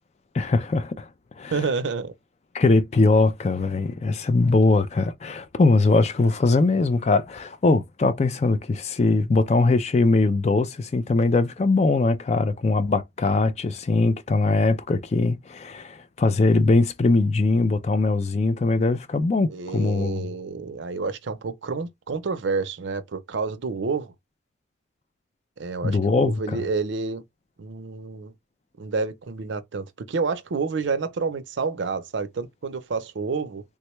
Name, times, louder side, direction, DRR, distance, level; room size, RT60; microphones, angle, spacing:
voice 1, 0.3-1.1 1.4-1.5 2.5-20.3 25.8-26.6, left 3 dB, 35° left, 0.3 m, -21 dB
voice 2, 1.5-2.1 19.5-24.1 25.6-27.2 27.6-28.3 28.8-33.6, right 4 dB, 75° right, 0.5 m, -29 dB
3.5 x 2.2 x 3.0 m
head